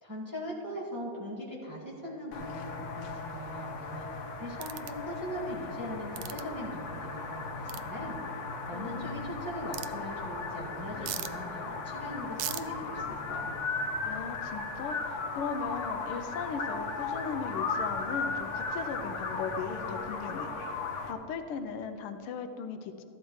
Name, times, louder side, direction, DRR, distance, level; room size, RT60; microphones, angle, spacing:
voice 1, 0.0-4.1 4.4-8.2 8.7-13.6, equal, 10° right, -7 dB, 1.7 m, -40 dB
sound 1, 2.3-21.1, left 4 dB, 65° left, 0.7 m, -36 dB
sound 2, 4.6-4.9 6.1-6.4 7.7-7.8 9.7-9.9 11.0-11.3 12.4-12.6, right 12 dB, 75° right, 1.0 m, -36 dB
voice 2, 8.7-9.3 14.0-20.5 21.1-23.0, left 5 dB, 85° left, 7 dB, 1.5 m, -38 dB
14.0 x 12.0 x 3.1 m, 2.8 s
omnidirectional pair, 2.4 m